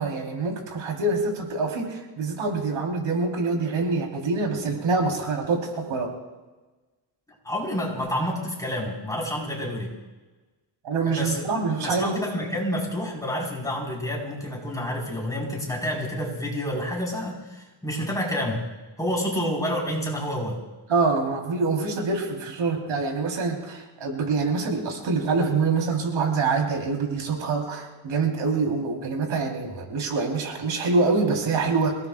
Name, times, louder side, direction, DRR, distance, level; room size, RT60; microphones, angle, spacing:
voice 1, 0.0-6.1 10.8-12.1 20.9-32.0, right 4 dB, 80° right, 1 dB, 4.0 m, -25 dB
voice 2, 7.4-9.9 11.1-11.4 11.7-18.7 19.0-20.6, equal, 5° left, -2 dB, 4.5 m, -29 dB
27.5 x 18.0 x 2.5 m, 1.2 s
wide cardioid pair, 135°, 46 cm